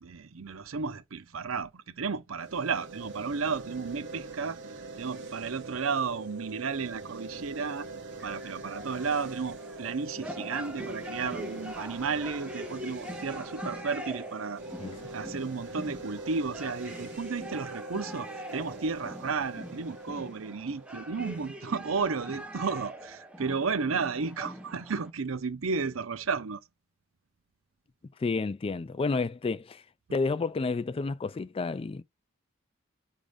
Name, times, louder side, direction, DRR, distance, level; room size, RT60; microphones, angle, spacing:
voice 1, 0.0-4.6 5.0-7.9 8.2-14.6 15.1-26.6, right 5 dB, 85° right, 0.7 m, -33 dB
sound 1, 2.4-21.5, right 2 dB, 60° right, 1.4 m, -43 dB
sound 2, 8.2-25.1, equal, 5° right, 1.0 m, -43 dB
voice 2, 28.2-29.8 30.1-32.0, left 4 dB, 30° left, 0.3 m, -30 dB
5.1 x 3.7 x 5.0 m
head